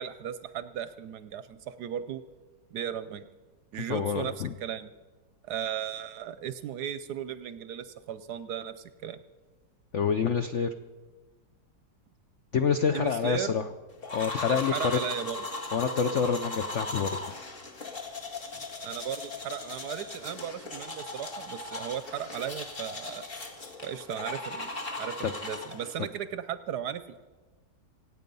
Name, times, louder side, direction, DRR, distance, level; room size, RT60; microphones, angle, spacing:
voice 1, 0.0-2.2 2.7-3.2 3.7-4.3 4.6-4.9 5.4-9.2 12.9-13.5 14.5-15.4 18.8-23.2 23.8-24.7 25.0-27.3, right 9 dB, 70° right, 13 dB, 1.0 m, -36 dB
voice 2, 3.9-4.5 9.9-10.7 12.5-13.6 14.1-15.0 15.7-17.2 25.2-25.3, left 6 dB, 70° left, 8 dB, 0.7 m, -27 dB
sound 1, 14.0-26.0, left 3 dB, 30° left, 1.8 m, -38 dB
25.5 x 8.9 x 5.4 m, 1.3 s
omnidirectional pair, 2.1 m